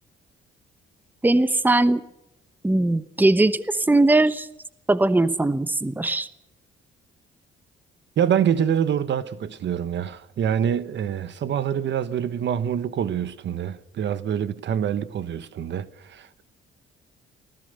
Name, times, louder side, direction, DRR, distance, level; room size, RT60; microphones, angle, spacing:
voice 1, 1.2-2.0 2.6-4.5 4.9-6.3, right 2 dB, 10° right, 1.0 m, -20 dB
voice 2, 8.2-16.4, right 8 dB, 65° right, 1.4 m, -25 dB
24.0 x 18.0 x 6.8 m
cardioid pair, 90°, 20 cm